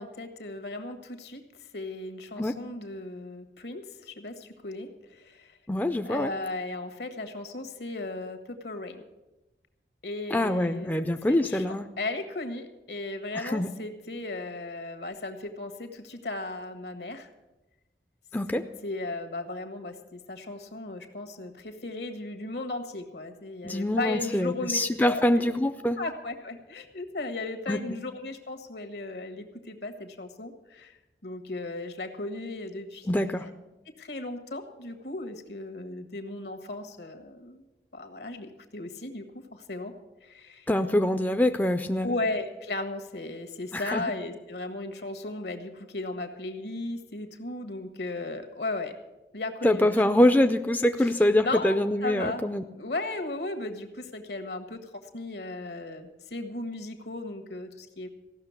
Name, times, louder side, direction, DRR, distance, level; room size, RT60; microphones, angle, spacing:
voice 1, 0.0-1.4 1.7-5.6 6.0-9.0 10.0-10.9 11.3-17.3 18.5-25.4 26.0-33.5 34.0-37.6 37.9-39.2 39.5-39.9 40.2-40.7 42.0-48.9 49.3-50.1 51.0-51.1 51.4-52.4 52.7-58.1, left 2 dB, 75° left, 6 dB, 1.6 m, -36 dB
voice 2, 5.7-6.3 10.3-11.9 13.3-13.7 18.3-18.6 23.6-26.0 27.7-27.8 33.1-33.5 40.7-42.1 43.7-44.0 49.6-52.6, left 1 dB, 10° left, 7 dB, 0.4 m, -24 dB
15.5 x 6.4 x 9.5 m, 1.0 s
head